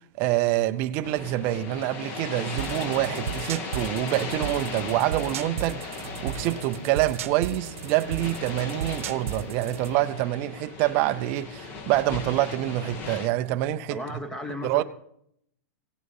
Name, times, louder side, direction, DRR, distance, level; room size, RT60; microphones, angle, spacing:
voice 1, 0.0-14.2 14.6-14.8, right 15 dB, 25° right, 0.6 m, -26 dB
sound 1, 1.0-13.3, left 4 dB, 25° left, 1.2 m, -37 dB
sound 2, 2.6-10.0, right 8 dB, 65° right, 1.0 m, -36 dB
voice 2, 13.9-14.8, left 1 dB, 5° left, 1.0 m, -34 dB
17.0 x 10.0 x 5.4 m
supercardioid pair, 175°, 8 cm